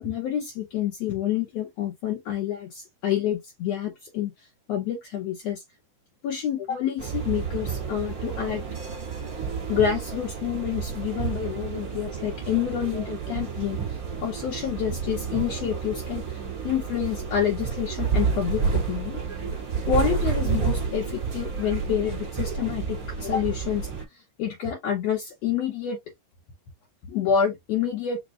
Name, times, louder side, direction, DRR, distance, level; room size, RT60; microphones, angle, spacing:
voice 1, 0.0-4.3 4.7-5.6 6.2-8.6 9.7-13.8 14.2-19.2 19.9-23.9 24.4-26.0 27.1-28.2, left 9 dB, 65° left, 1.9 m, -28 dB
sound 1, 7.0-24.0, right 6 dB, 40° right, 1.4 m, -30 dB
5.2 x 2.2 x 3.6 m
omnidirectional pair, 3.7 m